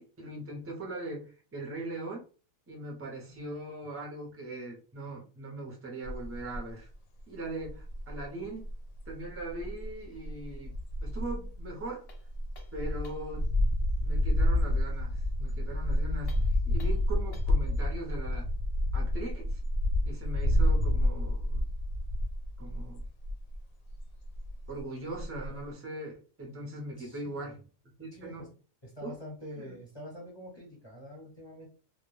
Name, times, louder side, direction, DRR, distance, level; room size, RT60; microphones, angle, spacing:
voice 1, 0.0-2.2 2.7-6.9 7.3-8.7 9.1-10.7 11.0-12.0 12.7-13.5 14.0-18.5 18.9-19.6 20.0-21.7 22.6-23.0 24.7-26.1 26.4-27.6 28.0-28.5 29.0-29.1 29.6-29.8, right 2 dB, 20° right, -1 dB, 0.4 m, -40 dB
sound 1, 6.0-6.7 7.2-7.3 7.6-23.6 23.9-24.8 25.1-25.5, left 1 dB, 85° left, 1.0 m, -29 dB
sound 2, 12.1-13.4 16.2-17.7, left 4 dB, 55° left, 0.8 m, -57 dB
voice 2, 27.0-27.5 28.1-28.5 28.8-31.7, left 1 dB, 25° left, -3 dB, 0.6 m, -46 dB
2.2 x 2.2 x 3.1 m, 0.37 s
omnidirectional pair, 1.4 m